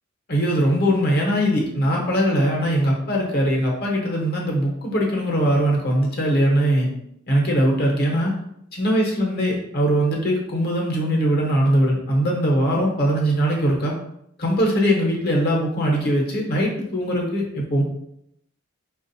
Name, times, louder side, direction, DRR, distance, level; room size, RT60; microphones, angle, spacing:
voice 1, 0.3-6.9 7.3-8.3 8.8-14.0 14.4-17.8, equal, 50° left, -2 dB, 0.9 m, -21 dB
4.5 x 2.4 x 2.6 m, 0.76 s
head